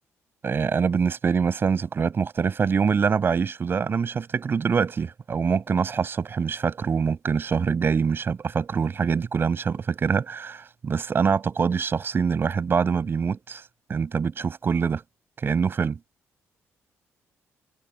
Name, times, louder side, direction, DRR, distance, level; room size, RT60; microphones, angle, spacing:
voice 1, 0.4-13.6 13.9-15.0 15.4-16.0, right 6 dB, 45° right, 7.8 m, -24 dB
cardioid pair, 90°, 5 cm